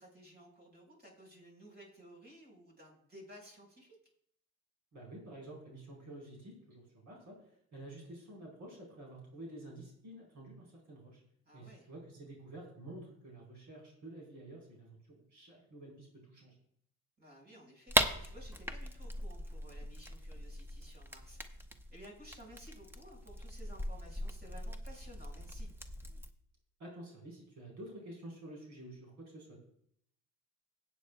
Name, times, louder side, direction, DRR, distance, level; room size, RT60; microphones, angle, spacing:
voice 1, 0.0-4.0 11.4-11.9 17.2-21.4 21.9-25.7, right 1 dB, 35° right, -2 dB, 4.8 m, -55 dB
voice 2, 4.9-11.2 11.5-16.6 26.8-29.6, right 1 dB, 70° right, -2 dB, 4.3 m, -50 dB
sound 1, 17.9-26.3, equal, 5° right, 0.8 m, -39 dB
17.5 x 8.3 x 2.3 m, 0.70 s
cardioid pair, 90°, 30 cm